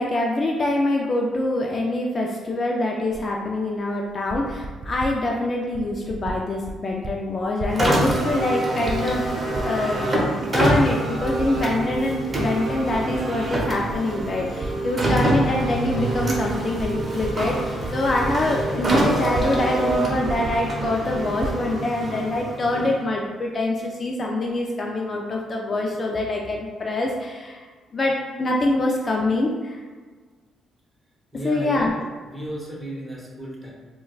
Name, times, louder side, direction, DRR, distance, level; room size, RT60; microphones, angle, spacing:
voice 1, 0.0-10.1 10.5-27.7 27.9-29.8 31.4-31.9, left 1 dB, 35° left, -1 dB, 0.4 m, -24 dB
Typing, 3.1-3.3 4.1-5.2 5.7-6.4 6.6-7.1 7.4-8.5 8.8-10.0 10.5-10.6 11.2-12.0 12.3-14.7 15.0-19.6 19.9-20.0 20.2-21.6, right 2 dB, 45° right, 0.3 m, -34 dB
Car, 7.7-23.1, right 1 dB, 30° right, 0.8 m, -26 dB
voice 2, 31.3-31.9 32.2-33.7, right 1 dB, 15° right, -5 dB, 1.1 m, -34 dB
4.4 x 2.2 x 2.3 m, 1.5 s
cardioid pair, 90°, 0 cm